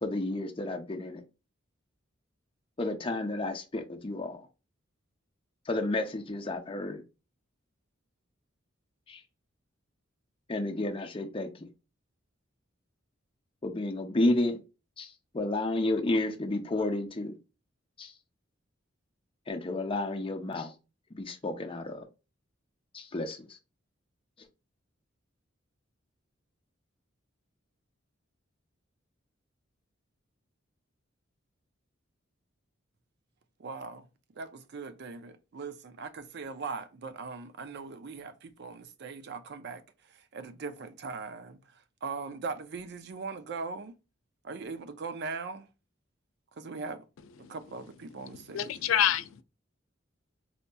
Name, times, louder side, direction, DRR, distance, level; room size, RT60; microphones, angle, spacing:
voice 1, 0.0-1.2 2.8-4.5 5.7-7.0 9.1-9.2 10.5-11.5 13.6-14.6 15.0-17.3 18.0-18.1 19.5-20.7 21.1-22.0 22.9-23.4, left 2 dB, 25° left, 0.6 m, -31 dB
voice 2, 33.6-34.1 34.4-39.8 40.1-41.6 42.0-44.0 44.4-45.7 46.6-47.0 47.5-48.7, right 4 dB, 60° right, 0.5 m, -40 dB
voice 3, 48.2-49.4, left 10 dB, 90° left, 0.4 m, -28 dB
4.2 x 2.7 x 2.2 m
head